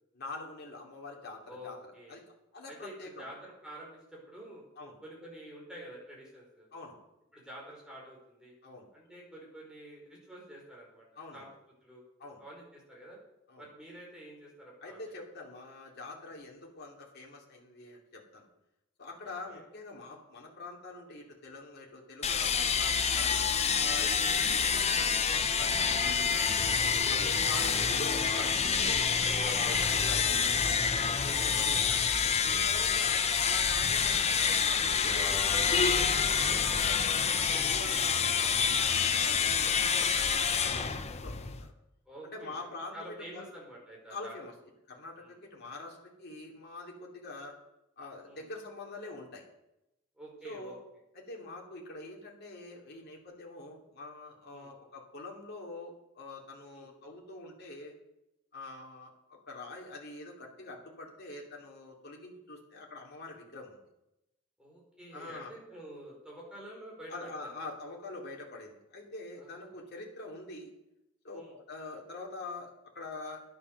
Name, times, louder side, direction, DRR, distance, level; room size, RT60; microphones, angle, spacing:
voice 1, 0.1-1.8 2.1-2.2 2.5-3.3 4.8-5.0 6.7-7.0 8.6-8.9 11.2-11.5 12.2-12.4 13.5-13.6 14.8-18.5 19.0-26.5 27.1-30.5 31.2-32.1 32.5-41.7 42.2-43.5 44.1-44.5 44.9-47.5 48.0-49.4 50.4-50.8 51.1-57.9 58.5-63.8 65.1-65.5 67.1-70.7 71.2-73.4, left 2 dB, 50° left, -1 dB, 2.8 m, -45 dB
voice 2, 1.5-2.2 2.7-4.6 5.0-6.7 7.3-8.5 8.9-11.1 11.3-11.5 11.8-12.0 12.4-13.2 13.6-15.2 19.5-19.6 27.0-27.5 30.6-31.6 39.3-39.6 42.0-44.4 45.2-45.4 48.2-48.4 50.2-50.8 54.5-54.7 56.7-56.9 64.6-67.7 69.4-69.9 71.3-71.5, right 1 dB, 5° right, -4 dB, 4.8 m, -49 dB
sound 1, 22.2-41.7, left 6 dB, 30° left, 0.8 m, -27 dB
11.0 x 10.5 x 6.6 m, 0.89 s
head